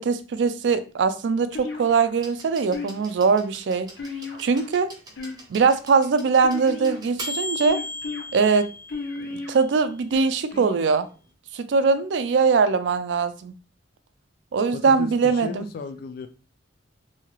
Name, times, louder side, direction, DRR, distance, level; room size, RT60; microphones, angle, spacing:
voice 1, 0.0-3.9 4.4-4.9 5.5-7.8 8.3-8.7 9.5-11.1 11.5-13.5 14.5-15.7, right 5 dB, 65° right, 12 dB, 0.3 m, -21 dB
sound 1, 1.5-2.1 2.7-3.3 4.0-4.7 5.1-5.8 6.4-7.1 7.7-8.2 8.9-9.5 10.1-10.8, left 3 dB, 85° left, 0.7 m, -34 dB
sound 2, 2.2-10.0 11.1-11.2, left 1 dB, 20° right, 0.6 m, -38 dB
voice 2, 14.7-16.3, left 4 dB, 55° left, 8 dB, 0.3 m, -35 dB
2.7 x 2.3 x 3.0 m, 0.35 s
head